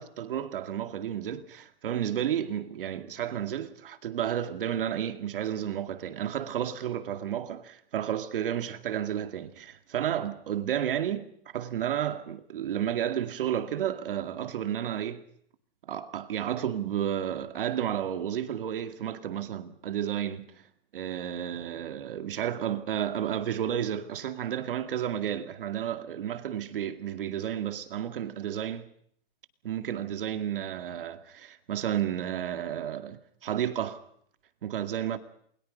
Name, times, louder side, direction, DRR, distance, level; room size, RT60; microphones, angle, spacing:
voice 1, 0.0-11.3 11.5-15.2 15.9-20.5 20.9-28.9 29.6-34.0 34.6-35.2, right 10 dB, 65° right, 2.2 m, -32 dB
28.5 x 22.5 x 5.3 m
hypercardioid pair, 175°, 30 cm